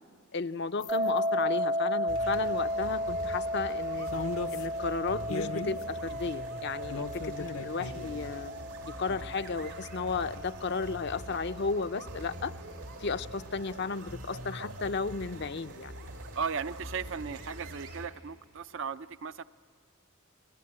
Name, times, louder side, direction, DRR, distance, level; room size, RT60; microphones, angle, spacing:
voice 1, 0.3-4.1 4.5-8.5 9.0-12.5 13.0-15.9, left 4 dB, 50° left, 10 dB, 0.6 m, -34 dB
sound 1, 0.8-1.1 2.2-2.3 4.1-4.7 5.3-5.8 6.9-8.1, left 3 dB, 70° left, 0.9 m, -37 dB
sound 2, 0.9-11.8, equal, 20° right, 0.7 m, -34 dB
sound 3, 2.1-18.1, right 1 dB, 90° right, 3.3 m, -44 dB
voice 2, 16.4-19.4, right 6 dB, 60° right, 11 dB, 0.6 m, -36 dB
30.0 x 20.5 x 8.7 m, 2.3 s
head